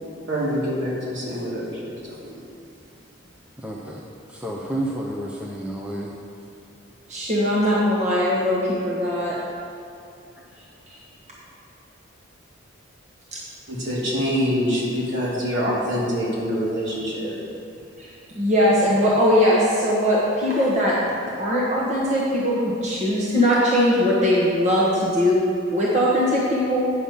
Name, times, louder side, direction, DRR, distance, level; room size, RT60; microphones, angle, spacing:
voice 1, 0.3-2.2 13.7-17.4, equal, 65° right, -6 dB, 2.7 m, -25 dB
voice 2, 3.6-4.0 4.3-6.2 10.4-10.5, right 1 dB, 5° right, -3 dB, 0.7 m, -30 dB
voice 3, 7.1-9.4 10.9-11.0 13.3-13.4 18.0-26.9, equal, 35° right, -6 dB, 1.3 m, -20 dB
9.7 x 7.0 x 5.6 m, 2.5 s
head